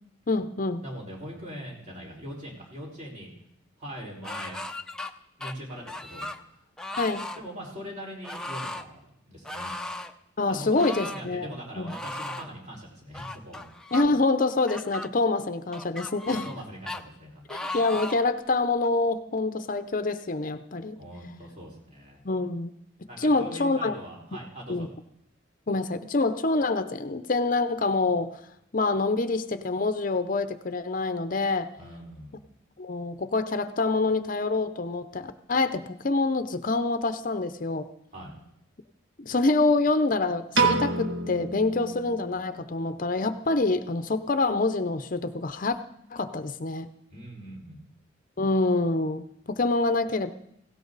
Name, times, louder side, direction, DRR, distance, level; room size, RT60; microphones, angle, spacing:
voice 1, 0.3-0.8 7.0-7.3 10.4-11.5 11.8-11.9 13.9-16.5 17.5-21.0 22.2-22.7 23.2-23.9 24.7-24.9 25.7-28.4 28.7-31.7 32.8-37.9 39.2-45.8 46.1-46.9 48.4-50.3, left 3 dB, 45° left, 10 dB, 0.7 m, -26 dB
voice 2, 0.8-3.3 3.8-4.6 5.4-6.4 7.3-9.7 10.4-13.7 16.3-17.5 20.9-22.2 23.1-24.9 31.8-32.5 38.1-38.3 47.1-47.9, equal, 40° right, -2 dB, 4.9 m, -41 dB
sound 1, 4.2-5.1 5.4-6.4 6.8-7.4 8.2-8.8 9.4-10.1 10.7-11.3 11.9-12.5 13.1-14.1 14.7-15.1 15.7-16.6 16.9-17.0 17.5-18.3 18.8-18.9, left 1 dB, 5° left, 0.7 m, -37 dB
Piano, 40.5-42.8, right 4 dB, 70° right, 1.9 m, -27 dB
18.5 x 17.0 x 4.0 m, 0.76 s
head